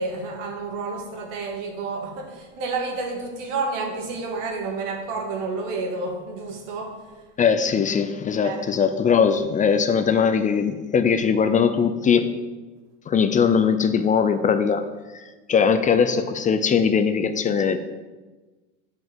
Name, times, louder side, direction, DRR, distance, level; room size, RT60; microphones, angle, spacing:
voice 1, 0.0-7.0 8.4-8.6, right 3 dB, 85° right, 3 dB, 2.1 m, -30 dB
voice 2, 7.4-12.3 13.1-14.8 15.1-17.8, left 6 dB, 20° left, 9 dB, 0.5 m, -20 dB
7.8 x 5.5 x 7.3 m, 1.2 s
supercardioid pair, 125°, 36 cm